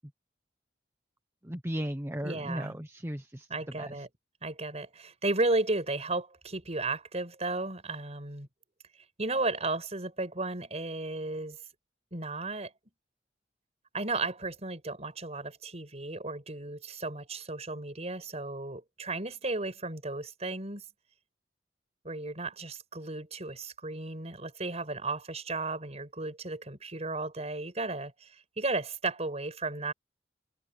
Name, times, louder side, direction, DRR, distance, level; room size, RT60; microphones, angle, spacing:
voice 1, 1.4-3.5 3.8-4.1, equal, 15° right, 1.1 m, -36 dB
voice 2, 2.2-2.8 3.5-4.1 4.4-8.5 9.2-11.6 12.1-12.7 13.9-20.8 22.0-28.3 28.6-29.9, right 2 dB, 40° right, 5.7 m, -34 dB
head